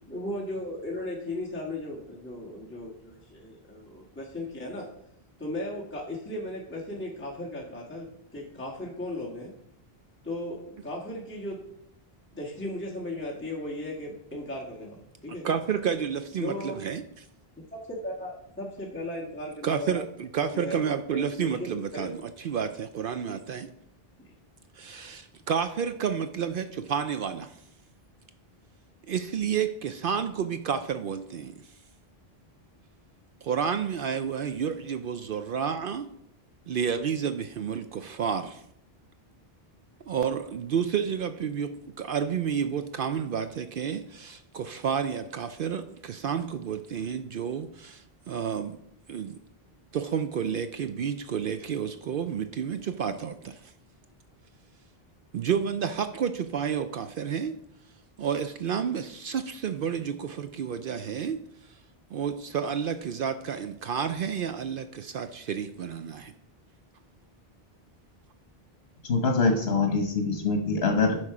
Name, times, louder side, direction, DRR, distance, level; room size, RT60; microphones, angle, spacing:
voice 1, 0.1-4.9 5.4-9.5 10.2-11.6 12.4-15.5 16.4-16.8 17.6-20.0 20.5-22.1 23.2-23.4, left 1 dB, 10° left, -4 dB, 1.6 m, -36 dB
voice 2, 15.4-17.0 19.6-23.7 24.7-27.6 29.1-31.5 33.4-36.1 36.7-38.6 40.1-48.8 49.1-49.4 49.9-53.7 55.3-57.5 58.2-61.8 62.1-66.3, right 7 dB, 65° right, 10 dB, 0.7 m, -30 dB
voice 3, 69.1-71.2, left 4 dB, 80° left, 3 dB, 1.3 m, -24 dB
9.7 x 6.3 x 4.8 m, 0.73 s
omnidirectional pair, 1.0 m